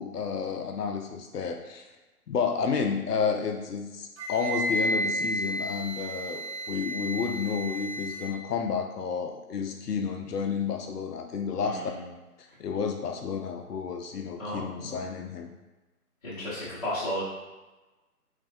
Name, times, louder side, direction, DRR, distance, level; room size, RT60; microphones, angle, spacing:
voice 1, 0.0-1.8 2.3-11.8 12.6-15.5, left 6 dB, 80° left, 4 dB, 0.6 m, -31 dB
Wind instrument woodwind instrument, 4.2-8.4, right 1 dB, 50° right, 0.6 m, -32 dB
voice 2, 11.6-12.0 14.4-15.1 16.2-17.2, equal, 25° left, -11 dB, 0.8 m, -34 dB
3.2 x 2.2 x 2.5 m, 1.1 s
figure-of-eight pair, 150°, 46 cm